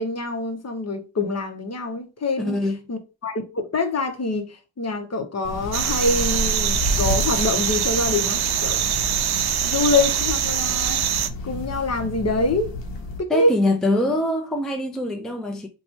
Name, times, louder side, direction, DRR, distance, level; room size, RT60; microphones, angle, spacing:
voice 1, 0.0-2.6 2.9-9.0 9.6-11.0 11.4-12.7 13.2-13.5, left 2 dB, 35° left, 0.8 m, -25 dB
voice 2, 2.4-2.8 13.3-15.7, left 1 dB, ahead, 0.5 m, -23 dB
sound 1, 5.4-13.2, left 1 dB, 80° left, 0.8 m, -30 dB
sound 2, 5.7-11.3, right 10 dB, 65° right, 0.5 m, -24 dB
2.9 x 2.3 x 4.1 m
cardioid pair, 65°, 43 cm